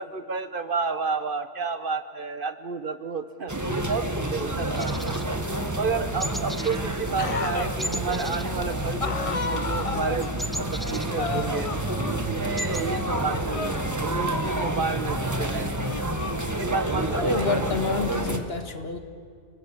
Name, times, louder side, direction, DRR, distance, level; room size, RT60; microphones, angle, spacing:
voice 1, 0.0-4.9 5.8-10.3 10.6-11.8 12.1-15.9 16.6-17.5, right 4 dB, 50° right, 11 dB, 1.2 m, -31 dB
sound 1, 3.5-18.4, right 1 dB, 15° right, 1.6 m, -29 dB
sound 2, 4.8-5.9 6.2-6.8 7.1-7.3 7.8-9.3 9.6-11.7 12.1-12.2 12.3-12.9, equal, ahead, 0.4 m, -36 dB
sound 3, 7.2-7.8 9.0-10.4 11.2-12.7 13.1-14.9 15.8-16.9, left 5 dB, 35° left, 0.8 m, -34 dB
voice 2, 17.1-19.0, left 4 dB, 60° left, 8 dB, 1.9 m, -29 dB
29.5 x 18.5 x 8.6 m, 2.2 s
omnidirectional pair, 1.2 m